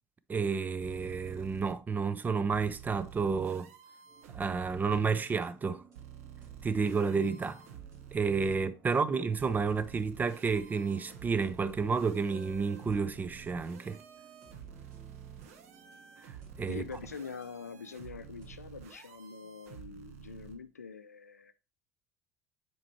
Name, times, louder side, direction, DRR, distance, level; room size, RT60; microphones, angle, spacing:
voice 1, 0.3-3.7 4.3-5.8 6.6-7.6 8.1-14.0 16.6-16.8, right 5 dB, 20° right, 0.5 m, -30 dB
sound 1, 0.8-1.7 2.5-5.1 5.9-8.6 9.4-20.6, right 9 dB, 65° right, 0.8 m, -50 dB
sound 2, 4.0-18.6, right 3 dB, 50° right, 2.8 m, -58 dB
voice 2, 16.7-21.5, left 5 dB, 85° left, 0.4 m, -44 dB
7.4 x 4.4 x 2.9 m
figure-of-eight pair, 65°, 8 cm